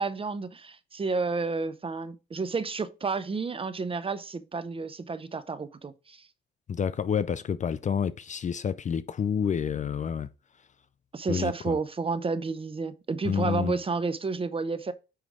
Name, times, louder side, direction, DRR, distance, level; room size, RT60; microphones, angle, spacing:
voice 1, 0.0-6.3 11.1-14.9, right 4 dB, 25° right, 0.7 m, -31 dB
voice 2, 6.7-10.3 11.3-11.8 13.2-13.8, left 7 dB, 35° left, 0.5 m, -29 dB
9.2 x 3.2 x 4.8 m
cardioid pair, 110°, 21 cm